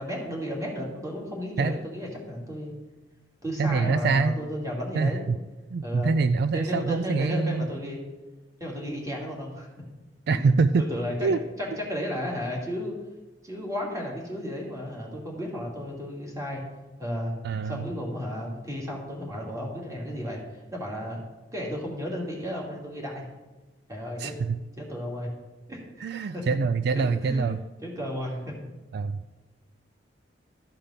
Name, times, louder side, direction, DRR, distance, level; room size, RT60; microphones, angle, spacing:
voice 1, 0.0-2.7 3.4-5.2 5.8-6.2 6.5-8.0 8.6-9.7 10.3-12.9 13.4-16.6 17.0-17.3 17.6-21.2 21.5-23.3 23.9-24.3 24.8-25.3 25.7-26.1 26.3-26.6 26.9-27.6 27.8-28.6, equal, 20° right, -2 dB, 2.6 m, -33 dB
voice 2, 3.6-4.3 4.9-5.4 5.7-7.7 10.3-10.8 11.2-11.4 17.4-17.9 24.2-24.6 26.0-27.6 28.9-29.2, right 4 dB, 60° right, 12 dB, 0.3 m, -25 dB
13.0 x 5.2 x 5.7 m, 1.2 s
head